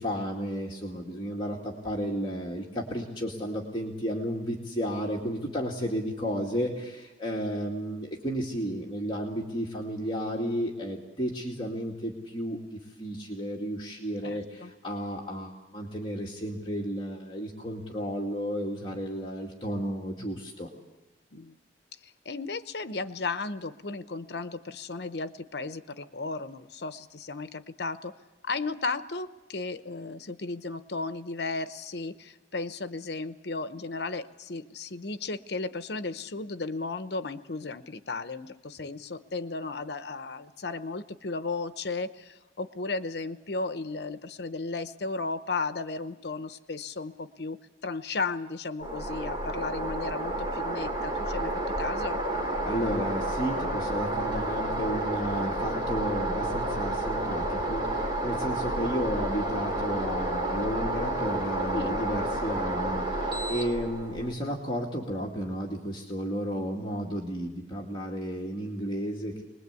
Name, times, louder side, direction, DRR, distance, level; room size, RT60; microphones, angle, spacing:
voice 1, 0.0-20.7 52.7-69.4, equal, 25° left, -2 dB, 2.2 m, -33 dB
voice 2, 14.2-14.7 21.3-21.5 22.0-28.1 28.4-51.5 51.8-52.2 61.7-62.0, left 3 dB, 65° left, 11 dB, 0.8 m, -35 dB
sound 1, 48.8-64.3, right 1 dB, 25° right, 2.4 m, -30 dB
25.5 x 20.5 x 8.3 m, 1.1 s
head